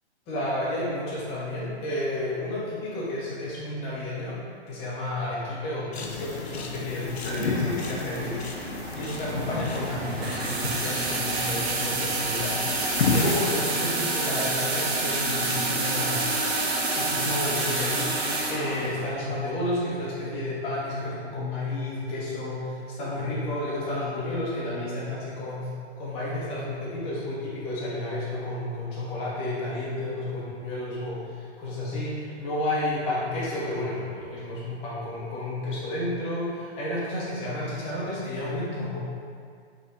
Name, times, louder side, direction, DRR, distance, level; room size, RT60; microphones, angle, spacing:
voice 1, 0.3-4.4 4.7-8.3 8.9-12.7 13.0-16.3 16.9-25.7 26.0-39.0, left 1 dB, 15° left, -8 dB, 0.9 m, -31 dB
sound 1, 5.9-13.4, left 4 dB, 70° left, 0.7 m, -32 dB
sound 2, 7.3-19.1, right 2 dB, 65° right, 0.9 m, -29 dB
5.1 x 3.5 x 2.6 m, 2.1 s
hypercardioid pair, 150°, 34 cm